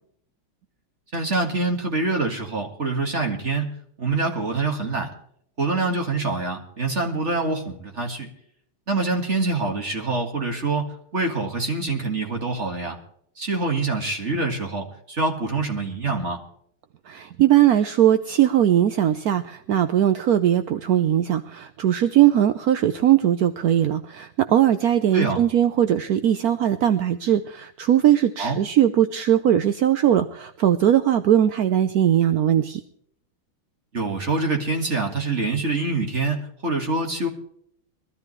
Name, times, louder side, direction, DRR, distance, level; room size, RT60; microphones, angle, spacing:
voice 1, 1.1-5.1 5.6-8.3 8.9-13.0 13.4-16.4 25.1-25.4 28.4-28.6 33.9-37.3, right 3 dB, 35° right, 3 dB, 2.0 m, -25 dB
voice 2, 17.1-32.8, right 11 dB, 70° right, 10 dB, 0.9 m, -20 dB
21.5 x 13.0 x 3.2 m, 0.67 s
omnidirectional pair, 2.3 m